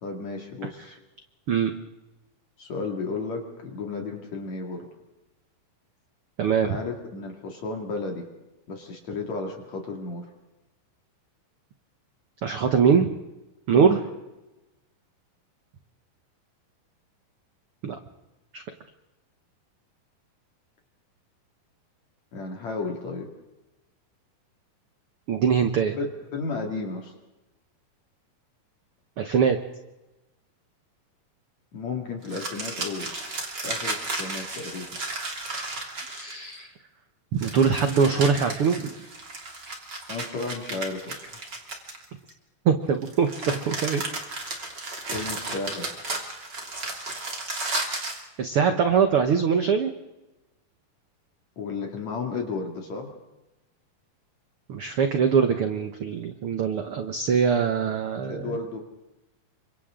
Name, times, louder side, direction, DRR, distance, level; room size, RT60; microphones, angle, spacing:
voice 1, 0.0-1.0 2.6-4.9 6.6-8.2 8.7-10.3 13.7-14.0 22.3-23.3 26.0-26.1 26.3-27.1 31.7-33.1 33.6-34.9 40.1-41.3 45.1-45.9 51.6-53.1 58.3-58.8, left 3 dB, 55° left, 2 dB, 3.4 m, -33 dB
voice 2, 6.4-6.8 12.4-13.1 13.7-14.0 17.8-18.0 18.5-18.6 25.3-26.0 29.2-29.6 36.0-36.7 37.3-38.9 42.6-44.0 44.9-45.0 48.4-49.9 54.7-58.5, right 6 dB, 70° right, 6 dB, 1.3 m, -22 dB
sound 1, 32.2-36.5 37.4-42.3 43.0-48.2, right 2 dB, 30° right, 3.3 m, -34 dB
29.5 x 25.5 x 3.8 m, 1.0 s
omnidirectional pair, 4.1 m